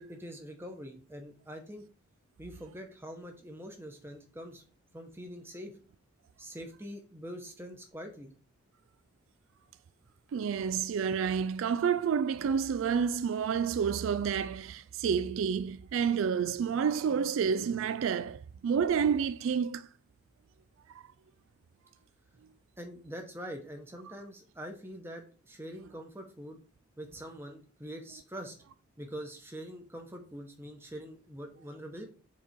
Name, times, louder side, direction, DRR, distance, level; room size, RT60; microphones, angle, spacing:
voice 1, 0.0-1.9 2.4-4.6 4.9-5.7 6.4-8.3 22.8-26.6 27.0-28.5 29.0-32.1, equal, 10° right, 1.1 m, -44 dB
voice 2, 10.3-19.9 20.9-21.0, right 7 dB, 70° right, 0.3 m, -29 dB
7.4 x 3.6 x 4.4 m
head